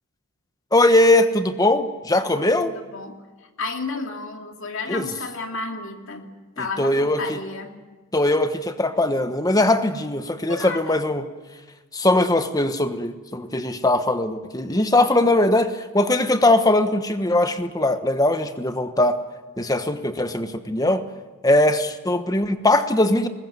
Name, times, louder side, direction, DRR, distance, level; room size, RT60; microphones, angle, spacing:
voice 1, 0.7-2.7 4.9-5.1 6.6-7.4 8.1-11.2 11.9-19.2 19.6-21.0 21.4-23.3, left 1 dB, 15° left, 9 dB, 1.2 m, -20 dB
voice 2, 2.3-3.2 3.6-6.3 6.6-7.8 10.5-11.0, left 3 dB, 60° left, 3 dB, 2.6 m, -32 dB
21.0 x 20.0 x 9.4 m, 1.3 s
head